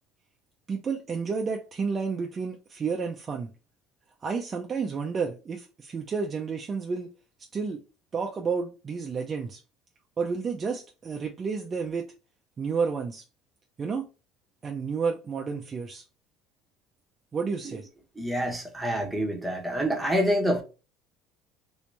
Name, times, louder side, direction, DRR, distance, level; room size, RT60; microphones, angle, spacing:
voice 1, 0.7-3.5 4.2-7.1 7.5-7.8 8.1-9.6 10.2-12.1 12.6-13.2 13.8-14.1 14.6-16.0 17.3-17.8, right 5 dB, 30° right, 0.5 m, -31 dB
voice 2, 18.2-20.6, equal, 5° right, 1.0 m, -27 dB
3.1 x 2.9 x 3.2 m
cardioid pair, 125°, 0 cm